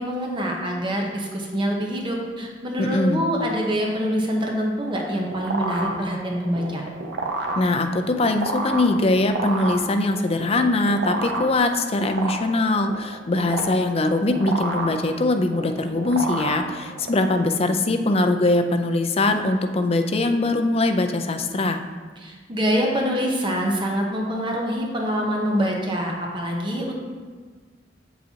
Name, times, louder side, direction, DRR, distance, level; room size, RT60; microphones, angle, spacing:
voice 1, 0.0-6.8 22.2-26.9, equal, 30° right, 0 dB, 0.9 m, -25 dB
voice 2, 2.8-3.3 7.6-21.8, left 2 dB, 35° left, 6 dB, 0.5 m, -22 dB
sound 1, 4.8-17.2, right 2 dB, 75° right, 0.9 m, -30 dB
7.5 x 7.0 x 2.8 m, 1.5 s
head